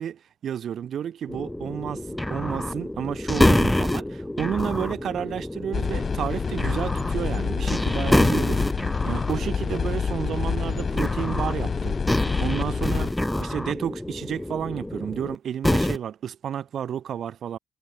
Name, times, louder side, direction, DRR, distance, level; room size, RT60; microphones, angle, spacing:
voice 1, 0.0-12.0 12.4-13.1 13.4-17.6, right 9 dB, 65° right, 0.6 m, -31 dB
sound 1, 1.3-15.4 15.6-16.0, left 1 dB, 10° left, 0.9 m, -27 dB
sound 2, 5.7-13.1, left 6 dB, 45° left, 0.9 m, -28 dB
cardioid pair, 90°, 0 cm